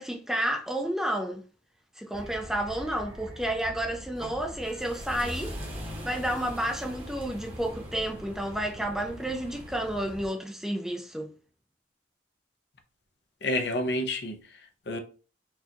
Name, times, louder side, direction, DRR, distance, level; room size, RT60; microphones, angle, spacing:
voice 1, 0.0-1.4 2.0-5.5 5.8-11.3, right 1 dB, ahead, 0.5 m, -31 dB
sound 1, 2.1-10.3, equal, 30° right, 1.0 m, -41 dB
voice 2, 13.4-15.0, left 1 dB, 60° left, 0.6 m, -30 dB
4.5 x 2.3 x 2.8 m
head